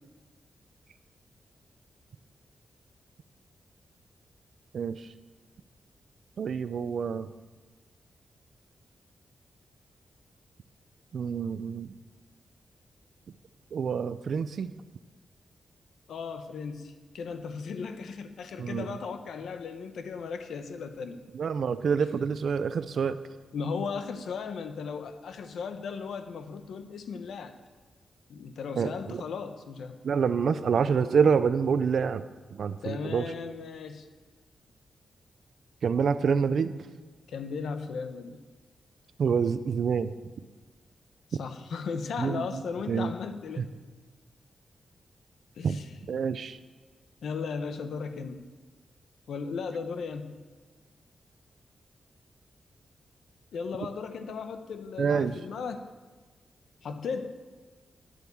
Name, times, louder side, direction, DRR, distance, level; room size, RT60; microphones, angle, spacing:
voice 1, 4.7-5.1 6.4-7.3 11.1-11.9 13.7-14.7 18.6-19.0 21.3-23.2 28.8-29.2 30.0-32.2 32.5-33.3 35.8-36.7 39.2-40.1 42.2-42.6 42.9-43.1 43.6-43.7 45.6-45.8 46.1-46.6 55.0-55.4, right 6 dB, 60° right, 13 dB, 0.5 m, -27 dB
voice 2, 16.1-21.2 23.5-27.5 28.3-30.0 32.8-34.0 37.3-38.4 41.4-43.7 45.6-45.8 46.1-46.2 47.2-48.4 49.3-50.4 53.5-55.9 56.8-57.4, left 5 dB, 90° left, 8 dB, 1.0 m, -36 dB
11.0 x 8.2 x 7.2 m, 1.3 s
wide cardioid pair, 145°, 0 cm